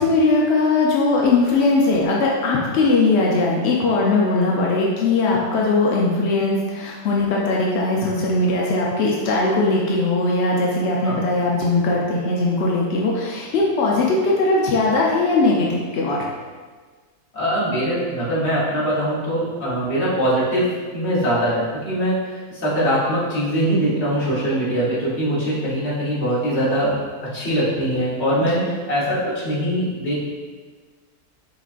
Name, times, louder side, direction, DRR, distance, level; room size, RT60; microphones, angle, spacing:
voice 1, 0.0-16.3 28.5-28.7, left 3 dB, 70° left, -3 dB, 0.6 m, -19 dB
voice 2, 17.3-27.0 27.3-30.2, equal, 50° left, -8 dB, 1.4 m, -22 dB
5.9 x 2.5 x 2.4 m, 1.5 s
omnidirectional pair, 1.6 m